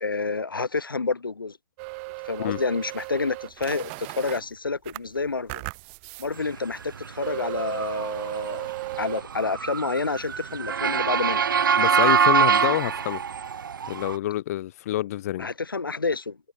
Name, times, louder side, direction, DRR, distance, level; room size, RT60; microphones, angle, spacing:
voice 1, 0.0-1.6 2.2-5.6 6.2-8.7 9.0-11.5 15.4-16.4, left 4 dB, 80° left, 1.4 m, -29 dB
sound 1, 1.8-4.4 4.8-6.3 6.7-6.8 7.2-9.2, right 31 dB, 35° right, 2.1 m, -36 dB
Motor vehicle (road) / Siren, 6.9-14.2, right 7 dB, 70° right, 0.5 m, -24 dB
voice 2, 11.8-13.2 13.9-15.5, left 13 dB, 45° left, 0.7 m, -27 dB
figure-of-eight pair, 120°, 11 cm